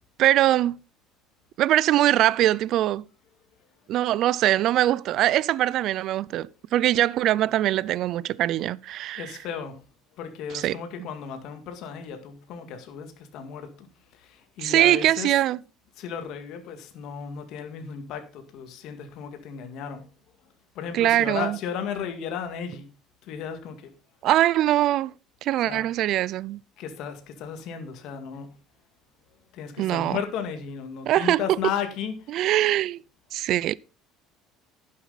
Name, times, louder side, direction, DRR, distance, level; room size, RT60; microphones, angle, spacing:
voice 1, 0.2-0.8 1.6-3.1 3.9-9.2 10.5-10.8 14.6-15.6 20.9-21.6 24.2-25.1 25.4-26.6 29.8-30.2 31.1-31.6 32.3-33.0 33.3-33.8, right 13 dB, 50° right, 0.4 m, -22 dB
voice 2, 9.1-9.8 10.2-13.7 14.1-15.3 16.0-20.1 20.8-22.9 23.2-23.9 25.6-25.9 26.8-28.5 29.5-32.6, left 7 dB, 60° left, 1.8 m, -35 dB
10.5 x 7.3 x 4.0 m
cardioid pair, 145°, 0 cm